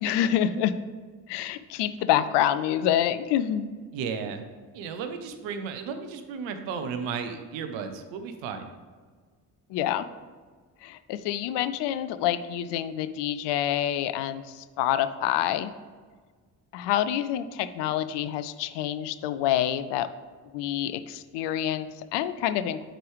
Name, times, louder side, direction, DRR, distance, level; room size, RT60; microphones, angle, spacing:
voice 1, 0.0-0.7 1.3-3.8 9.7-10.1 10.8-15.7 16.7-20.1 20.5-22.9, left 11 dB, 60° left, 12 dB, 0.5 m, -27 dB
voice 2, 3.9-4.4 4.7-8.7, right 6 dB, 65° right, 7 dB, 0.8 m, -34 dB
8.8 x 4.6 x 3.2 m, 1.5 s
figure-of-eight pair, 40°, 49 cm